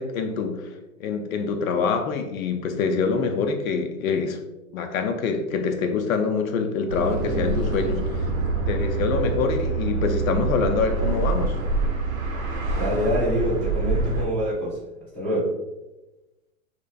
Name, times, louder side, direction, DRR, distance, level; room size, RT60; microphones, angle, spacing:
voice 1, 0.0-4.4 4.7-8.3 8.7-11.6, left 5 dB, 80° left, 5 dB, 0.5 m, -25 dB
sound 1, 6.9-14.3, right 3 dB, 75° right, 0.7 m, -26 dB
voice 2, 12.7-14.8 15.1-15.5, equal, 5° left, -15 dB, 0.4 m, -25 dB
2.5 x 2.1 x 2.3 m, 1.0 s
hypercardioid pair, 135°, 41 cm